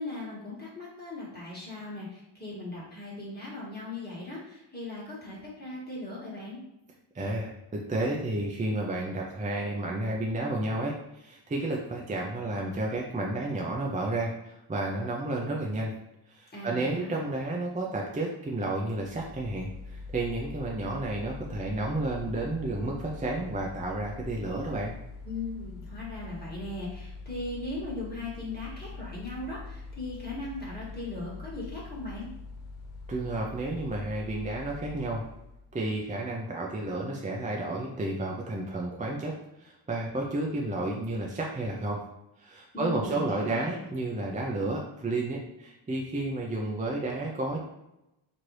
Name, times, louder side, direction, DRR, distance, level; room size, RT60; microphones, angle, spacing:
voice 1, 0.0-6.6 16.5-17.1 25.2-32.3 42.7-43.9, left 2 dB, 20° left, -6 dB, 1.4 m, -38 dB
voice 2, 7.1-15.9 16.3-24.9 33.1-35.2 35.7-39.3 39.6-42.0 42.4-47.6, right 2 dB, 15° right, -2 dB, 0.4 m, -31 dB
Mechanical fan, 18.9-35.8, left 3 dB, 85° left, 0.9 m, -43 dB
4.4 x 2.6 x 3.1 m, 0.90 s
wide cardioid pair, 150°, 49 cm